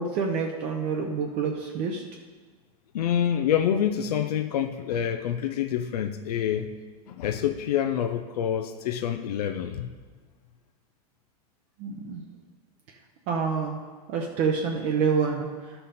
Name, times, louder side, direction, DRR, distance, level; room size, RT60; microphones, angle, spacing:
voice 1, 0.0-2.0 11.8-12.2 13.3-13.8 14.1-15.8, right 5 dB, 35° right, 2 dB, 0.7 m, -27 dB
voice 2, 2.9-6.7 7.1-9.9, left 9 dB, 80° left, 7 dB, 0.6 m, -27 dB
12.5 x 5.5 x 4.2 m, 1.4 s
supercardioid pair, 160°, 20 cm